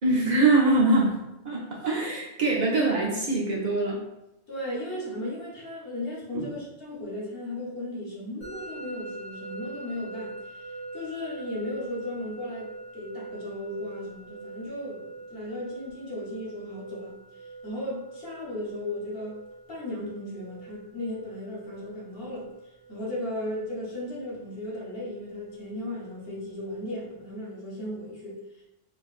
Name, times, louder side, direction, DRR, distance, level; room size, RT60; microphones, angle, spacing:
voice 1, 0.0-4.0 6.3-6.5, right 2 dB, 45° right, -4 dB, 0.8 m, -23 dB
voice 2, 4.5-19.4 19.7-22.5 22.9-28.6, left 1 dB, 60° left, -4 dB, 1.2 m, -36 dB
Musical instrument, 8.4-27.3, right 3 dB, 30° left, 1.6 m, -44 dB
4.5 x 2.6 x 2.4 m, 0.90 s
omnidirectional pair, 1.1 m